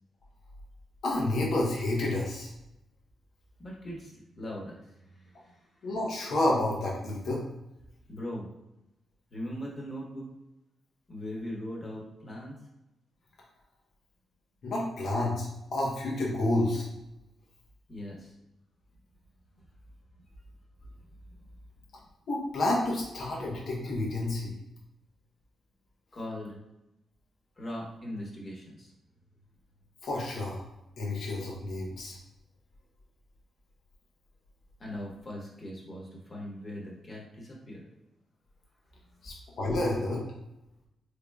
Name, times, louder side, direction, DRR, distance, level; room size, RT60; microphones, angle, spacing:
voice 1, 1.0-2.5 5.8-7.4 14.6-16.9 22.3-24.5 30.0-30.6 31.0-32.2 39.2-40.2, left 2 dB, 70° left, -3 dB, 0.9 m, -29 dB
voice 2, 3.6-6.0 8.1-8.5 9.3-10.3 11.1-12.6 17.9-18.3 19.6-19.7 21.0-21.1 21.4-21.5 22.0-22.1 26.1-26.6 27.6-28.9 34.8-37.9 39.1-39.3, left 1 dB, 40° left, -2 dB, 1.2 m, -40 dB
3.6 x 3.4 x 2.3 m, 0.91 s
cardioid pair, 75°, 0 cm